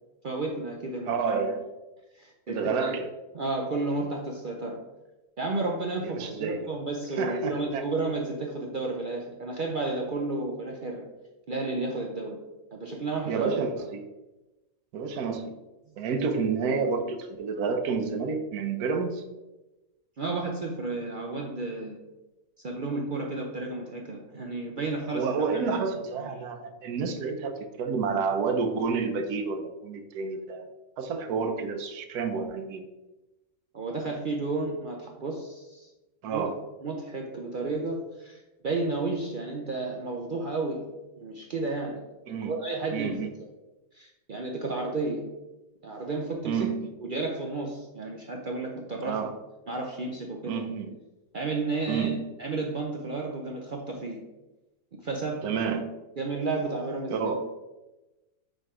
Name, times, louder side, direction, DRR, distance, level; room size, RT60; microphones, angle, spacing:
voice 1, 0.2-1.2 2.1-2.9 3.3-4.8 5.4-11.1 11.5-12.4 12.7-13.6 16.0-16.1 20.2-22.0 22.6-25.3 25.5-25.8 26.2-26.3 33.7-35.9 36.3-36.4 36.8-40.8 41.2-42.0 42.3-43.3 43.9-45.3 45.8-46.7 47.0-49.3 49.7-50.6 51.3-52.1 52.4-54.2 54.9-55.5 56.2-57.3, right 3 dB, 55° right, 1 dB, 0.5 m, -32 dB
voice 2, 1.1-1.7 2.5-3.1 6.0-6.6 7.2-7.9 13.3-14.0 14.9-15.6 16.0-19.2 25.1-30.7 31.0-32.8 36.2-36.6 42.3-42.6 42.9-43.3 46.4-46.9 49.0-49.4 50.5-50.9 51.9-52.2 55.4-55.9 57.1-57.5, right 5 dB, 85° right, 8 dB, 1.2 m, -29 dB
4.5 x 4.4 x 4.8 m, 1.1 s
omnidirectional pair, 1.6 m